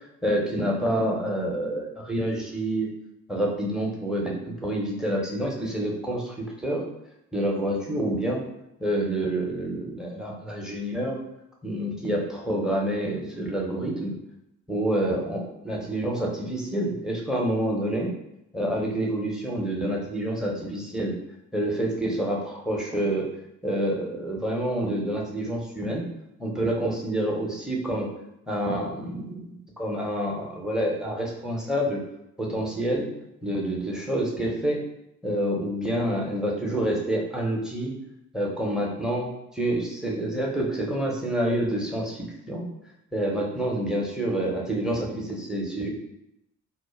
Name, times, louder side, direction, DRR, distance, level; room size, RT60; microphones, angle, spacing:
voice 1, 0.0-2.9 3.3-6.8 7.3-8.4 8.8-11.2 11.6-14.1 14.7-18.1 18.5-21.2 21.5-23.3 23.6-26.1 26.4-28.1 28.5-32.0 32.4-33.1 33.4-34.8 35.2-37.9 38.3-42.6 43.1-45.9, right 1 dB, ahead, -1 dB, 0.4 m, -28 dB
2.1 x 2.1 x 3.0 m, 0.85 s
figure-of-eight pair, 40°, 45 cm